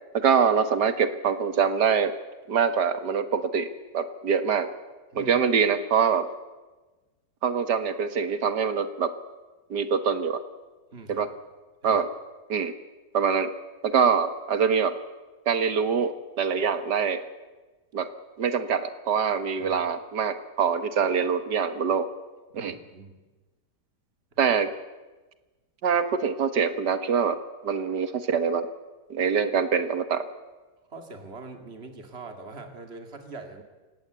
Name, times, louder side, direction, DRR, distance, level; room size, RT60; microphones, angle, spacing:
voice 1, 0.1-2.1 2.5-3.7 3.9-4.7 5.2-6.3 7.4-9.1 9.7-10.4 11.1-11.3 11.8-12.1 12.5-12.7 13.1-13.5 13.8-15.0 15.5-17.2 17.9-18.1 18.4-22.1 22.5-22.8 24.4-24.7 25.8-27.4 27.6-28.7 29.1-30.3, right 6 dB, 70° right, 10 dB, 1.9 m, -24 dB
voice 2, 10.9-11.3 11.8-12.0 19.6-19.8 22.5-23.2 24.3-24.5 30.9-33.6, right 3 dB, 35° right, 5 dB, 2.8 m, -43 dB
28.0 x 17.0 x 8.2 m, 1.2 s
omnidirectional pair, 1.9 m